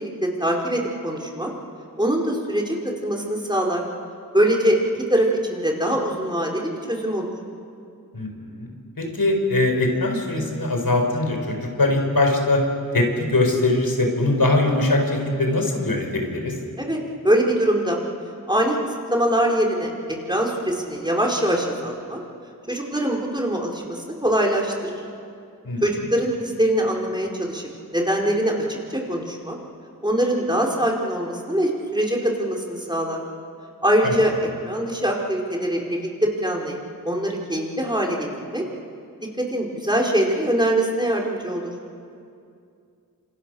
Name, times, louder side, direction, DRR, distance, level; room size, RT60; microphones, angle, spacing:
voice 1, 0.0-1.5 2.0-2.8 3.0-3.8 4.3-4.8 5.1-7.3 16.8-18.0 18.5-22.2 22.7-25.0 25.8-27.6 27.9-29.6 30.0-33.2 33.8-34.3 34.6-36.8 37.0-38.6 39.4-41.7, right 1 dB, 10° right, -1 dB, 4.9 m, -23 dB
voice 2, 8.1-12.6 12.9-16.6 25.6-25.8 34.0-34.2, left 2 dB, 75° left, 3 dB, 4.6 m, -22 dB
28.5 x 27.0 x 6.5 m, 2.4 s
wide cardioid pair, 45°, 36 cm